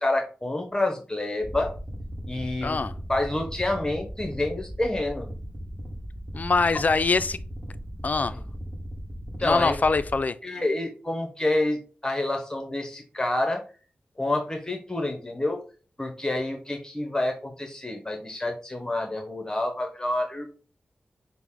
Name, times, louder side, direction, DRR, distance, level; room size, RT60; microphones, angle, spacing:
voice 1, 0.0-1.7 2.3-2.8 3.1-5.3 8.3-8.4 9.4-9.7 10.4-13.6 14.2-15.6 16.0-20.5, left 2 dB, 20° left, 0.7 m, -28 dB
sound 1, 1.4-10.2, equal, 20° right, 1.2 m, -37 dB
voice 2, 2.6-2.9 6.3-7.4 8.0-8.4 9.4-10.4, left 4 dB, 45° left, 0.3 m, -23 dB
5.9 x 2.0 x 3.6 m
cardioid pair, 60°, 4 cm